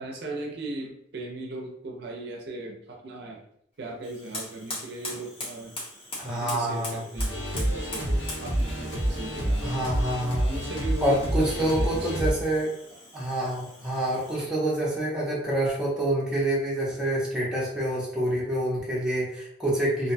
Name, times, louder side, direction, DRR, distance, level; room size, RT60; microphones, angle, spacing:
voice 1, 0.0-3.4 3.8-5.7 6.2-9.8 10.4-12.4, right 2 dB, 55° right, 0 dB, 0.5 m, -37 dB
Fire, 4.0-14.6, left 1 dB, 30° left, 0.8 m, -42 dB
voice 2, 6.2-7.0 9.6-10.5 11.0-12.7 13.1-20.1, right 1 dB, 5° right, -7 dB, 0.6 m, -27 dB
sound 1, 7.2-12.3, equal, 70° left, 0.8 m, -28 dB
2.5 x 2.1 x 2.6 m, 0.70 s
head